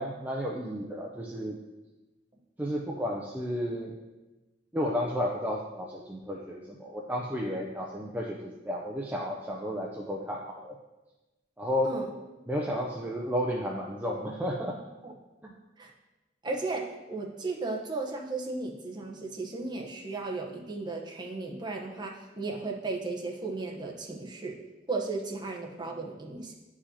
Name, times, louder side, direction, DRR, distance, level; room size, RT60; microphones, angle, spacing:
voice 1, 0.0-1.6 2.6-3.9 4.7-10.7 11.6-12.0 12.5-14.8 15.4-15.5, equal, 10° right, -2 dB, 0.5 m, -32 dB
voice 2, 16.4-24.6 24.9-26.5, right 3 dB, 25° right, -1 dB, 0.9 m, -35 dB
10.0 x 4.9 x 2.8 m, 1.1 s
head